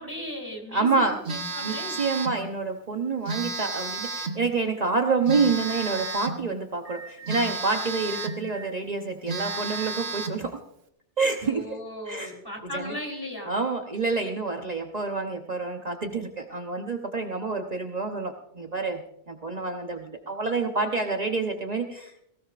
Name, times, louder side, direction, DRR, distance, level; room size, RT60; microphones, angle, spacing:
voice 1, 0.0-2.0 11.4-13.6, equal, 20° left, 1 dB, 3.9 m, -37 dB
voice 2, 0.7-1.2 1.6-10.6 11.2-11.6 12.1-12.3 12.7-12.9 13.5-22.2, right 4 dB, 40° right, 3 dB, 1.0 m, -28 dB
Telephone, 1.2-2.4 3.2-4.4 5.3-6.4 7.3-8.4 8.9-9.0 9.3-10.4, right 3 dB, 70° right, 1.5 m, -32 dB
Alarm, 5.6-6.2 6.8-7.4 8.1-8.7 9.3-9.9, right 5 dB, 80° left, 5.8 m, -43 dB
19.0 x 16.5 x 2.5 m, 0.73 s
omnidirectional pair, 1.1 m